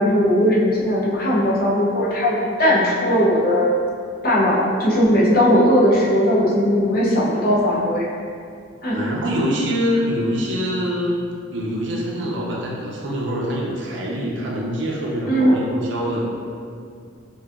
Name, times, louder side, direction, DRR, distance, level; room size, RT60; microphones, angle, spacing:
voice 1, 0.0-3.7 4.2-8.1 8.8-9.0 15.3-15.6, equal, 50° left, -6 dB, 0.7 m, -18 dB
voice 2, 8.9-11.2 11.5-16.3, equal, 70° right, -3 dB, 0.6 m, -24 dB
4.5 x 2.7 x 2.5 m, 2.2 s
head